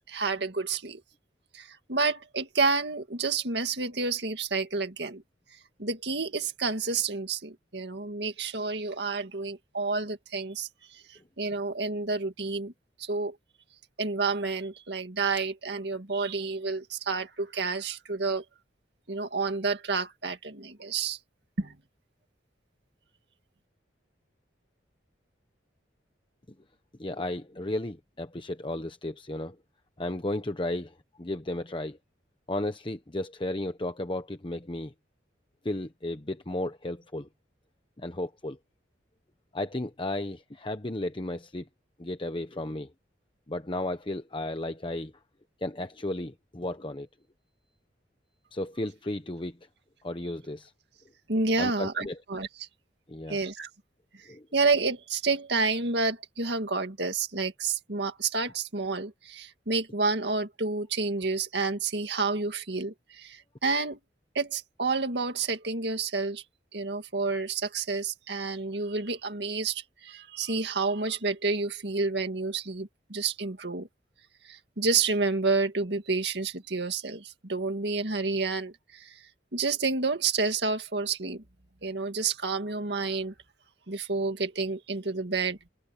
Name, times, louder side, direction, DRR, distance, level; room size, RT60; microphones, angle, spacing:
voice 1, 0.1-1.0 1.5-5.2 5.8-12.7 13.0-13.4 14.0-18.4 19.1-21.2 21.6-21.8 51.3-52.7 53.3-53.7 54.2-64.0 64.3-66.4 66.7-73.9 74.4-79.2 79.5-81.4 81.8-83.3 83.9-85.6, right 4 dB, 60° right, 2.2 m, -29 dB
voice 2, 27.0-29.6 30.0-32.0 32.5-34.9 35.6-37.3 38.0-38.6 39.5-41.7 42.0-42.9 43.5-45.1 45.6-47.1 48.5-49.6 50.0-50.7 51.6-52.2 53.1-53.4 54.3-54.5, left 1 dB, 25° left, 1.0 m, -34 dB
head